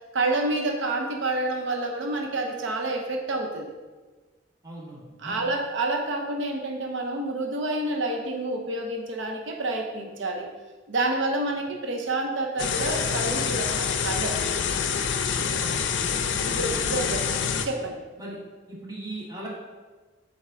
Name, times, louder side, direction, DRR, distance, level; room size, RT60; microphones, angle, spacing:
voice 1, 0.1-3.7 5.2-10.5 10.9-14.3 16.4-17.2 17.6-18.0, right 2 dB, 85° right, 2 dB, 0.7 m, -28 dB
voice 2, 4.6-5.4 15.6-16.1 17.0-17.2 18.2-18.4 18.7-19.5, right 1 dB, 20° right, -5 dB, 1.4 m, -39 dB
sound 1, 12.6-17.7, left 6 dB, 75° left, 0.5 m, -26 dB
7.4 x 3.6 x 3.7 m, 1.3 s
head